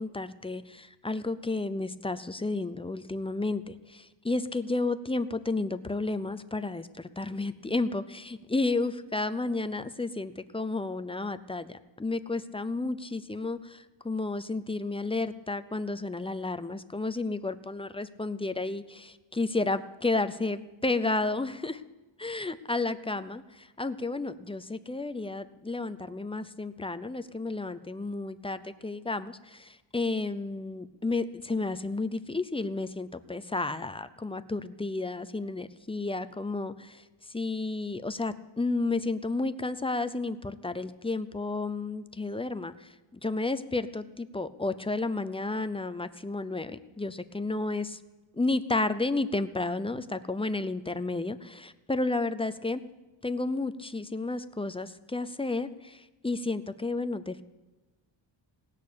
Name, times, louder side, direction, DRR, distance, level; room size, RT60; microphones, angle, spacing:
voice 1, 0.0-21.8 22.2-48.0 48.3-52.8 53.2-57.4, left 3 dB, 15° left, 10 dB, 0.5 m, -32 dB
17.5 x 6.6 x 8.5 m, 1.2 s
wide cardioid pair, 120°, 46 cm